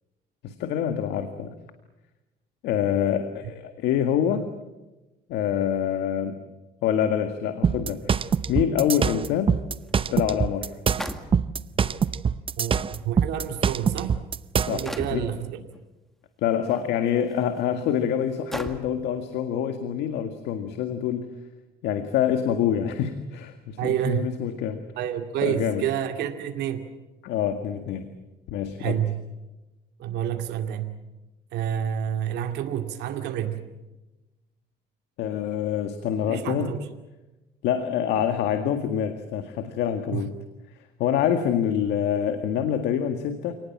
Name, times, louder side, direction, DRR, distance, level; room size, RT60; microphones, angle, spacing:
voice 1, 0.4-1.5 2.6-4.5 5.3-6.3 6.8-8.2 8.5-9.6 10.1-10.7 14.7-15.3 16.4-21.3 21.8-24.8 25.4-25.8 27.2-28.1 28.5-29.0 35.2-36.7 37.6-40.3 41.0-43.5, left 9 dB, 85° left, 7 dB, 1.9 m, -26 dB
sound 1, 7.6-14.8, right 6 dB, 30° right, 0.8 m, -24 dB
sound 2, 9.9-10.0 11.0-11.8 12.7-12.8 13.6-13.8 14.9-15.3 16.6-16.8 17.4-17.5 18.5-19.0, equal, ahead, 2.0 m, -35 dB
voice 2, 12.6-14.2 14.7-15.6 23.8-24.3 25.0-26.9 28.8-29.1 30.0-30.9 31.5-33.6 36.3-36.8 40.1-40.3, right 10 dB, 80° right, 5 dB, 2.3 m, -29 dB
28.5 x 19.0 x 7.4 m, 1.1 s
cardioid pair, 110°, 17 cm